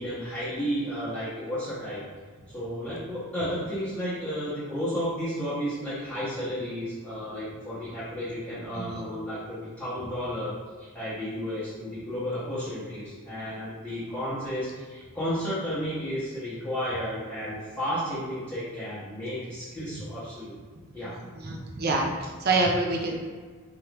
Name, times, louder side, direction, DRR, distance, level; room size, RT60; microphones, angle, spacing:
voice 1, 0.0-2.0 2.5-20.6 20.9-21.2, equal, 5° left, -14 dB, 0.9 m, -32 dB
voice 2, 21.4-23.2, right 2 dB, 45° right, 0 dB, 0.5 m, -26 dB
4.4 x 2.4 x 3.3 m, 1.5 s
head